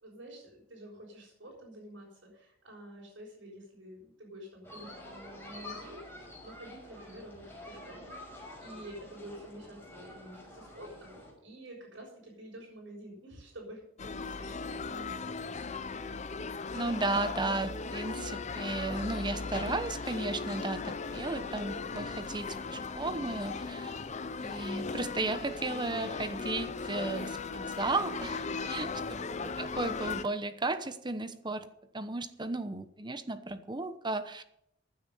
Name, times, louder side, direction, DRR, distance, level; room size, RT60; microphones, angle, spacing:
voice 1, 0.0-8.1 8.6-15.3 28.7-29.2, right 1 dB, 80° right, -5 dB, 6.3 m, -49 dB
sound 1, 4.6-11.3, left 1 dB, 10° left, 6.1 m, -48 dB
sound 2, 14.0-30.2, left 4 dB, 40° left, 0.6 m, -37 dB
voice 2, 16.7-23.9 24.4-28.9 29.6-34.4, right 2 dB, 25° right, 11 dB, 1.0 m, -34 dB
15.5 x 9.8 x 5.6 m, 0.74 s
head